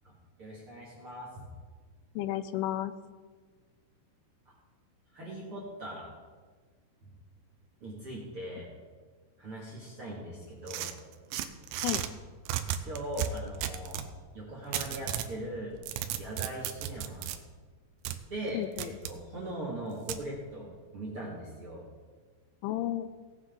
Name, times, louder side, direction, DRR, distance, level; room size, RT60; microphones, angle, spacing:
voice 1, 0.4-1.5 5.1-6.1 7.0-7.1 7.8-8.7 9.4-10.9 12.8-14.0 14.3-15.7 16.2-17.3 18.3-21.8, right 1 dB, 45° right, -5 dB, 1.9 m, -40 dB
voice 2, 2.2-2.9 11.8-12.0 18.5-18.9 22.6-23.1, left 13 dB, 90° left, 13 dB, 3.0 m, -32 dB
sound 1, 10.7-12.1 12.5-14.1 14.7-15.3 15.7-17.4 18.1-18.2 18.8-19.2 20.1-20.2, right 11 dB, 85° right, 2.6 m, -34 dB
18.0 x 8.0 x 3.8 m, 1.5 s
omnidirectional pair, 5.5 m